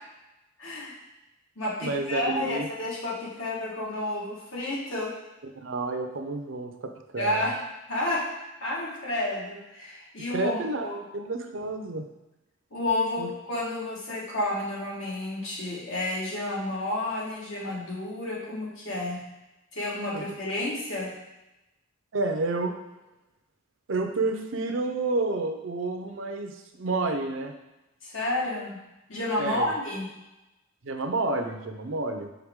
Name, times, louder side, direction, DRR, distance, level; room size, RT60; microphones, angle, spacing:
voice 1, 0.6-0.9 1.6-5.1 7.2-7.6 7.9-8.3 8.6-10.5 10.8-11.0 12.7-19.2 19.7-21.1 28.0-28.8 29.1-30.1, left 1 dB, 70° left, -4 dB, 1.5 m, -30 dB
voice 2, 1.8-2.7 5.6-7.5 10.3-10.9 11.1-12.1 13.2-13.3 20.1-20.2 22.1-22.7 23.9-27.5 29.4-29.7 30.8-32.3, right 3 dB, 65° right, 5 dB, 0.6 m, -30 dB
5.7 x 4.7 x 3.6 m, 0.98 s
head